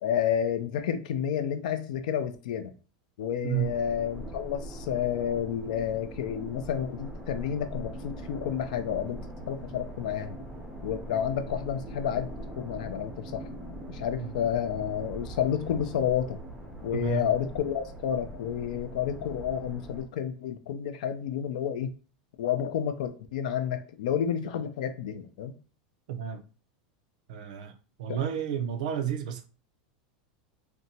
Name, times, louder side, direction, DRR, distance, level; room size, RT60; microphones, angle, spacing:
voice 1, 0.0-2.7 3.2-10.4 10.8-12.3 12.6-13.6 13.9-16.4 16.8-21.9 22.4-25.5, left 9 dB, 80° left, 0.5 m, -30 dB
sound 1, 3.5-20.1, right 1 dB, 5° right, 0.5 m, -42 dB
voice 2, 16.9-17.3 26.1-26.4 27.3-27.7 28.0-29.4, right 9 dB, 75° right, 0.5 m, -31 dB
2.8 x 2.2 x 2.6 m
supercardioid pair, 150°, 4 cm